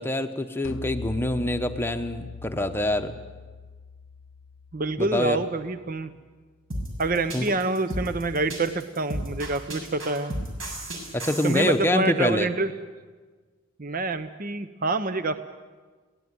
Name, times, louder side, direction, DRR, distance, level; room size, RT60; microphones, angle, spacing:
voice 1, 0.0-3.2 5.0-5.4 7.3-7.5 11.1-12.5, left 1 dB, 10° left, 6 dB, 0.9 m, -25 dB
sound 1, 0.6-6.1, left 5 dB, 75° left, 0.7 m, -41 dB
voice 2, 4.7-6.1 7.0-10.3 11.4-12.7 13.8-15.4, right 2 dB, 45° right, 11 dB, 0.8 m, -27 dB
sound 2, 6.7-11.7, right 1 dB, 75° right, 6.9 m, -33 dB
22.5 x 18.0 x 9.5 m, 1.4 s
head